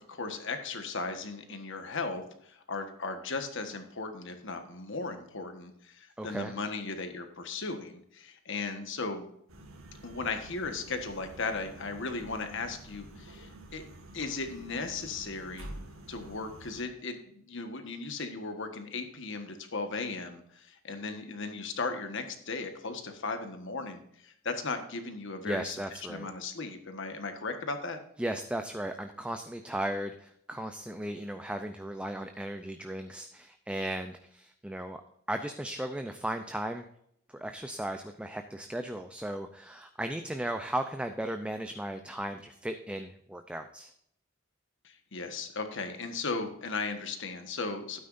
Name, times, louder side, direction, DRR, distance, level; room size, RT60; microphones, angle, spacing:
voice 1, 0.1-9.2 10.0-13.8 14.1-15.7 16.1-25.8 26.1-28.0 44.8-48.0, left 3 dB, 60° left, 7 dB, 1.4 m, -36 dB
voice 2, 6.2-6.5 25.4-26.3 28.2-35.0 35.3-36.9 37.3-43.9, right 1 dB, 5° right, 6 dB, 0.5 m, -36 dB
sound 1, 9.5-16.8, right 1 dB, 80° right, 1.8 m, -48 dB
12.0 x 9.3 x 2.6 m, 0.70 s
head